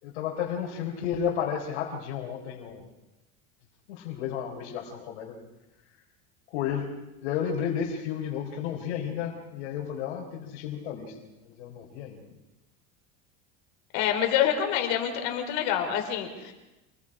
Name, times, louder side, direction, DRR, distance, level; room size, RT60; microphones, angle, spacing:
voice 1, 0.0-2.9 3.9-5.4 6.5-6.9 7.2-12.3, left 8 dB, 90° left, -2 dB, 4.1 m, -32 dB
voice 2, 13.9-16.5, left 9 dB, 65° left, 5 dB, 4.6 m, -26 dB
28.0 x 21.0 x 5.0 m, 1.0 s
supercardioid pair, 140°, 33 cm